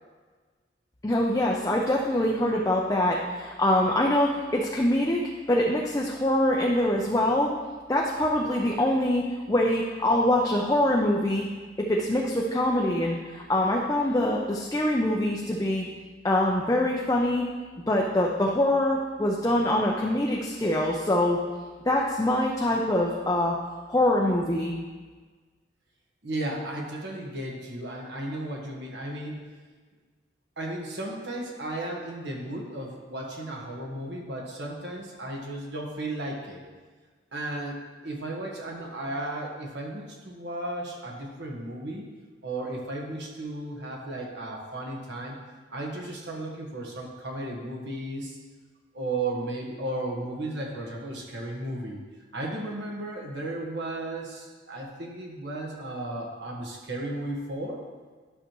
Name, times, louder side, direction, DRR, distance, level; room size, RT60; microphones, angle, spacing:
voice 1, 1.0-5.2 5.5-7.5 7.9-11.4 11.9-15.8 16.2-17.5 17.9-21.4 21.8-23.6 23.9-24.7, left 1 dB, 20° left, -2 dB, 0.6 m, -24 dB
voice 2, 26.2-29.4 30.6-36.7 37.3-42.1 42.4-45.4 45.7-48.4 48.9-52.0 52.3-57.8, right 1 dB, 70° right, -1 dB, 1.5 m, -34 dB
11.0 x 6.6 x 3.1 m, 1.4 s
head